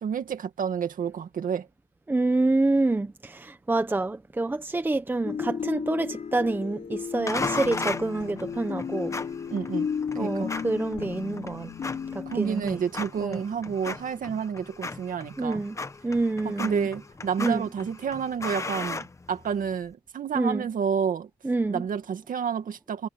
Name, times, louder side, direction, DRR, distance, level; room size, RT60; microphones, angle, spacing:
voice 1, 0.0-1.7 9.5-9.9 10.2-10.5 12.3-15.6 16.4-21.3 21.7-23.1, right 7 dB, 50° right, 2.1 m, -30 dB
voice 2, 2.1-9.2 10.2-11.7 12.3-12.8 13.2-13.4 15.4-15.8 16.0-16.9 17.4-17.7 20.3-20.7 21.4-21.8, right 2 dB, 10° right, 1.0 m, -27 dB
sound 1, 5.2-12.5, left 6 dB, 40° left, 4.1 m, -33 dB
sound 2, 7.3-19.8, left 3 dB, 15° left, 1.0 m, -37 dB
wide cardioid pair, 160°, 18 cm